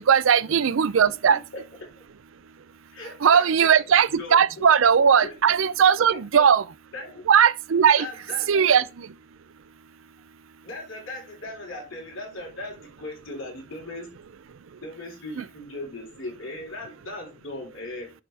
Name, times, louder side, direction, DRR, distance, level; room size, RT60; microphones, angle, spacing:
voice 1, 0.0-1.4 3.2-6.6 7.3-8.1 8.5-9.1 15.4-15.5, right 7 dB, 85° right, 0.5 m, -19 dB
voice 2, 1.0-1.6 1.9-2.0 2.9-4.7 5.2-5.3 6.1-6.5 6.9-7.2 8.0-8.7 10.6-14.2 14.8-18.1, left 2 dB, 90° left, 4.0 m, -38 dB
11.0 x 4.9 x 3.4 m
head